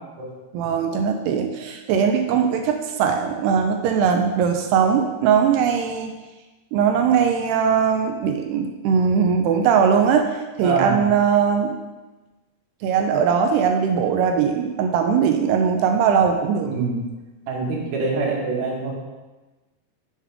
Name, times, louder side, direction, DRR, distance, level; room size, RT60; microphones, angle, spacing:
voice 1, 0.5-6.1 6.7-10.3 10.6-11.8 12.8-16.7, right 7 dB, 80° right, 4 dB, 2.4 m, -20 dB
voice 2, 10.6-11.0 16.6-17.0 17.5-18.9, right 4 dB, 60° right, -2 dB, 3.1 m, -24 dB
11.0 x 7.3 x 3.5 m, 1.2 s
omnidirectional pair, 5.3 m